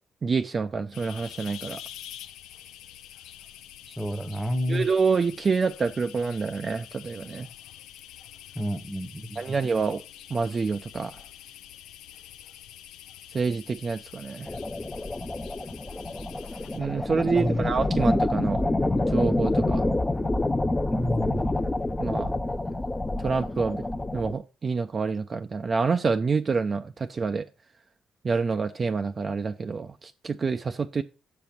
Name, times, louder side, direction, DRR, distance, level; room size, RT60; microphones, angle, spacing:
voice 1, 0.2-1.8 4.7-7.5 9.4-10.0 10.3-11.2 13.3-14.6 16.7-18.6 19.1-19.9 22.0-22.3 23.2-23.8 24.1-27.5 28.2-31.0, right 4 dB, 40° right, 0.4 m, -27 dB
sound 1, 0.9-17.0, left 11 dB, 90° left, 0.4 m, -46 dB
voice 2, 3.9-4.9 8.5-9.6 17.4-17.6 20.9-21.4, equal, 5° right, 1.0 m, -29 dB
sound 2, 14.5-24.4, left 2 dB, 15° left, 0.6 m, -27 dB
6.8 x 5.3 x 4.4 m
cardioid pair, 90°, 0 cm